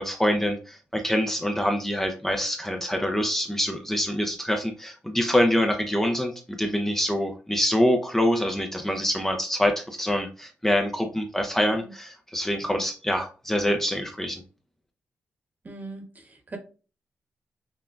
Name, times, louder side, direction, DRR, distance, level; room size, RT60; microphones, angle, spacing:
voice 1, 0.0-14.4, equal, 10° left, 3 dB, 0.6 m, -25 dB
voice 2, 11.6-11.9 15.6-16.6, right 2 dB, 35° right, 4 dB, 1.2 m, -41 dB
5.7 x 2.3 x 2.5 m, 0.35 s
cardioid pair, 70°, 5 cm